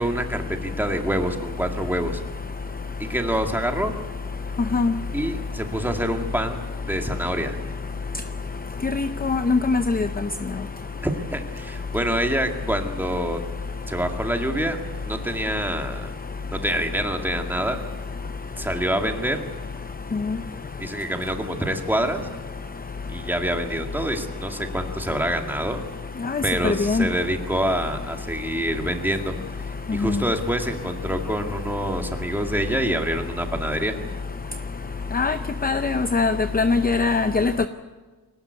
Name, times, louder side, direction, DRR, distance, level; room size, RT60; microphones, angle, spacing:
voice 1, 0.0-2.2 3.1-3.9 5.1-6.6 6.9-7.6 11.0-13.4 13.9-14.8 15.0-16.1 16.5-17.8 18.6-19.4 20.8-22.2 23.1-25.8 26.4-29.3 29.7-33.9, right 1 dB, 5° right, 3 dB, 2.2 m, -26 dB
voice 2, 8.9-10.1 26.3-27.0 35.1-35.4 35.6-37.7, left 4 dB, 25° left, 10 dB, 0.6 m, -22 dB
22.0 x 18.5 x 8.3 m, 1.3 s
wide cardioid pair, 135°, 38 cm